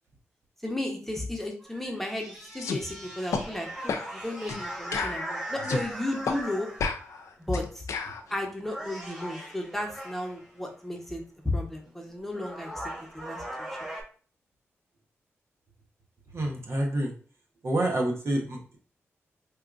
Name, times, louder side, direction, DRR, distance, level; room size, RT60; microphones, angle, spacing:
voice 1, 0.6-6.7 7.4-7.9 8.3-13.9, left 1 dB, 5° left, 1 dB, 1.0 m, -34 dB
sound 1, 1.6-7.2 8.1-8.3 8.6-10.5 11.9-12.0 12.3-14.0, right 1 dB, 10° right, 1.5 m, -39 dB
sound 2, 2.6-2.8 3.3-3.5 3.9-4.1 4.5-4.6 4.9-5.9 6.3-6.4 6.8-8.2, left 5 dB, 80° left, 0.4 m, -31 dB
voice 2, 16.3-17.1 17.6-18.8, right 1 dB, 55° right, 0 dB, 0.9 m, -28 dB
4.3 x 2.4 x 2.5 m, 0.40 s
cardioid pair, 55°, 5 cm